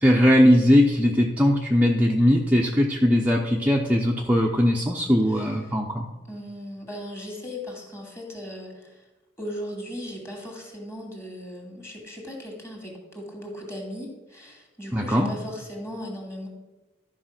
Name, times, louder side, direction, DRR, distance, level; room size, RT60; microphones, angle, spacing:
voice 1, 0.0-6.1 14.9-15.3, equal, 10° right, -1 dB, 0.6 m, -20 dB
voice 2, 6.3-9.0 9.4-16.5, equal, 15° left, 0 dB, 2.2 m, -37 dB
12.5 x 4.8 x 5.8 m, 1.1 s
head